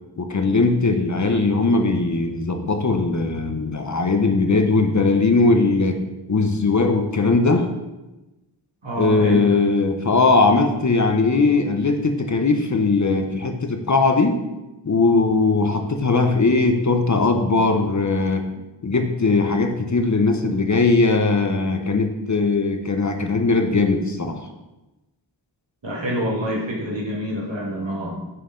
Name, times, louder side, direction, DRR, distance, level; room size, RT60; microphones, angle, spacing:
voice 1, 0.2-6.0 6.3-7.7 9.0-14.4 14.8-18.4 18.8-24.5, left 3 dB, 40° left, 5 dB, 0.7 m, -19 dB
voice 2, 8.8-9.6 18.5-18.6 25.8-28.3, equal, 75° right, -4 dB, 1.8 m, -27 dB
6.6 x 4.3 x 3.8 m, 1.0 s
wide cardioid pair, 60°, 45 cm